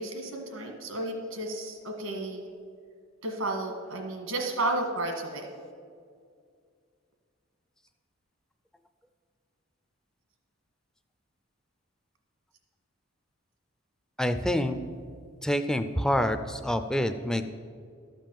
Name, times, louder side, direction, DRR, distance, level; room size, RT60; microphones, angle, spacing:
voice 1, 0.0-2.4 3.2-5.5, right 2 dB, 85° right, 2 dB, 1.6 m, -32 dB
voice 2, 14.2-14.8 15.4-17.4, equal, 5° left, 8 dB, 0.4 m, -27 dB
12.5 x 5.3 x 7.5 m, 2.2 s
head